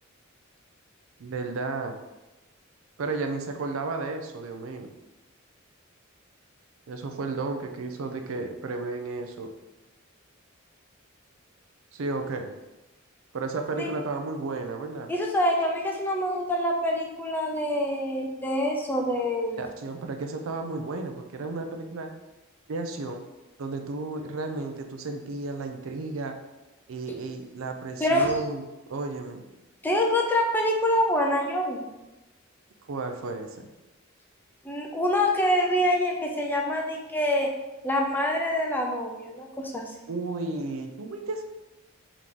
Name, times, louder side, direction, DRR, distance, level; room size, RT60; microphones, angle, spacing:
voice 1, 1.2-2.0 3.0-4.9 6.9-9.5 11.9-12.5 13.3-15.1 19.6-22.1 22.7-23.2 23.6-26.4 26.9-28.6 28.9-29.5 32.9-33.6 40.1-41.4, right 3 dB, 85° right, 5 dB, 0.5 m, -33 dB
voice 2, 15.1-19.6 28.0-28.3 29.8-31.8 34.6-37.5 37.8-39.9, left 1 dB, 10° left, 1 dB, 0.5 m, -25 dB
3.7 x 3.0 x 3.6 m, 1.0 s
head